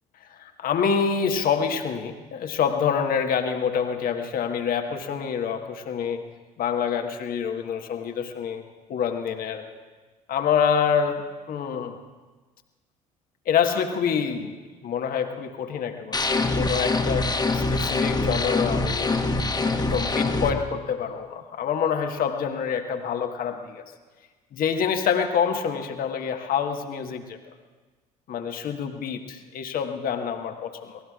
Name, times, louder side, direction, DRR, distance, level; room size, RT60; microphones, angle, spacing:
voice 1, 0.4-6.2 6.6-8.6 8.9-9.6 10.3-12.0 13.5-14.5 14.8-17.3 17.5-19.4 19.7-23.8 24.5-27.4 28.3-31.0, left 7 dB, 50° left, 5 dB, 1.4 m, -26 dB
sound 1, 16.1-20.5, left 3 dB, 20° left, 1.4 m, -24 dB
28.5 x 18.5 x 2.4 m, 1.3 s
figure-of-eight pair, 55°, 19 cm